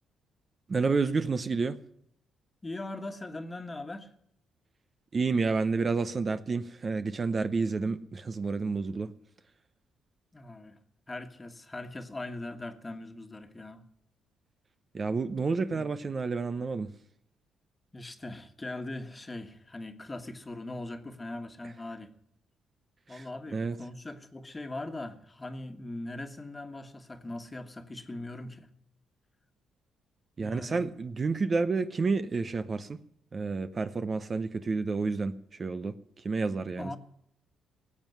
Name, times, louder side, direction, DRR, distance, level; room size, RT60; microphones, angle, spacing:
voice 1, 0.7-1.8 5.1-9.1 14.9-16.9 23.1-23.3 23.5-23.8 30.4-33.0 33.3-37.0, right 4 dB, 35° right, 0.7 m, -30 dB
voice 2, 2.6-4.1 10.3-10.8 11.1-13.8 15.7-15.9 17.9-22.1 23.1-28.7 30.4-30.9 36.8-37.0, left 2 dB, 20° left, 1.6 m, -40 dB
18.0 x 7.3 x 9.3 m
cardioid pair, 90°, 0 cm